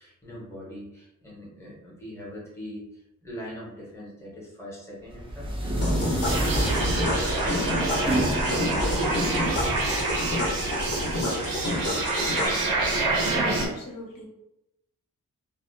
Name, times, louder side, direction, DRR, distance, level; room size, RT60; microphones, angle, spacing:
voice 1, 0.0-2.8 3.2-10.2, equal, 10° left, -5 dB, 0.7 m, -41 dB
sound 1, 5.1-10.9, right 1 dB, 15° right, 0.3 m, -29 dB
sound 2, 5.8-12.5, left 1 dB, 45° left, 0.6 m, -29 dB
sound 3, 6.2-13.7, right 3 dB, 85° right, 0.6 m, -27 dB
voice 2, 13.2-14.2, left 1 dB, 90° left, -3 dB, 0.9 m, -39 dB
2.4 x 2.0 x 2.5 m, 0.86 s
wide cardioid pair, 180°, 33 cm